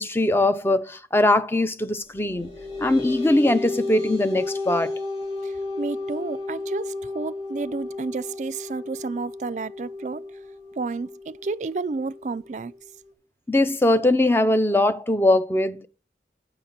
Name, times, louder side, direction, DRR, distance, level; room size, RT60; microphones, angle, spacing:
voice 1, 0.0-2.5 2.8-4.9 13.5-15.9, left 1 dB, 15° left, 0.5 m, -21 dB
sound 1, 2.1-13.1, left 3 dB, 35° left, 2.4 m, -33 dB
voice 2, 5.8-10.2 10.8-12.7, right 4 dB, 40° right, 0.4 m, -31 dB
9.3 x 4.2 x 6.6 m
head